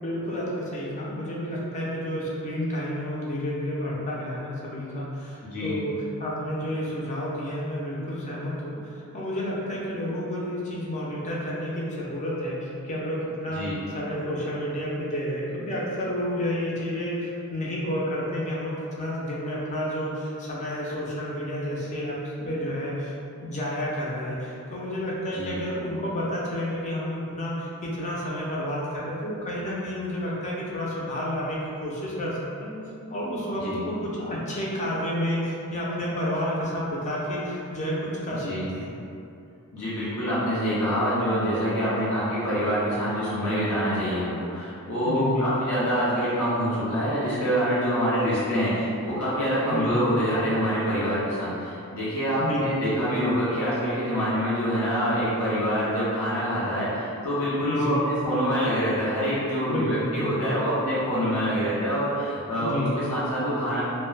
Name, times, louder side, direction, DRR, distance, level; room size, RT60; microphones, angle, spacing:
voice 1, 0.0-13.6 13.9-32.7 33.1-38.0 38.2-38.9 45.0-45.5 49.7-50.0 52.4-52.7 57.6-58.0 59.6-60.5 62.6-63.0, equal, 30° left, -5 dB, 0.5 m, -30 dB
voice 2, 5.4-5.8 13.5-13.8 25.3-25.6 33.6-33.8 38.4-38.7 39.7-63.8, equal, 75° left, -9 dB, 0.7 m, -26 dB
2.3 x 2.1 x 3.2 m, 2.6 s
head